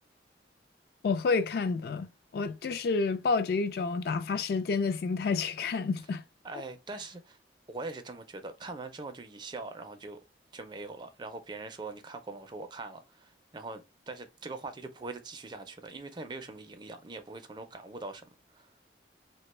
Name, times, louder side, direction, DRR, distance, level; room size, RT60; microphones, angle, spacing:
voice 1, 1.0-6.2, left 4 dB, 60° left, 0.3 m, -29 dB
voice 2, 6.4-7.4 7.7-10.2 10.5-18.7, right 3 dB, 25° right, 0.4 m, -42 dB
3.2 x 2.2 x 3.0 m
head